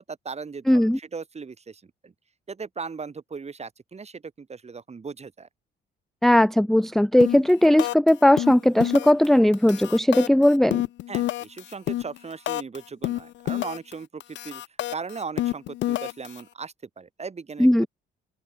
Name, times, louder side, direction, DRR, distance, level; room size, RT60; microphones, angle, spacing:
voice 1, 0.0-2.1 2.5-5.5 11.1-14.6 14.9-17.9, right 5 dB, 35° right, 2.8 m, -38 dB
voice 2, 0.7-1.0 6.2-10.8 17.6-17.9, left 1 dB, ahead, 0.5 m, -18 dB
sound 1, 7.2-7.5 7.8-8.1 8.4-9.3 9.5-12.8 13.0-13.9 14.2-16.4, left 15 dB, 65° left, 0.4 m, -28 dB
open air
cardioid pair, 90°, 20 cm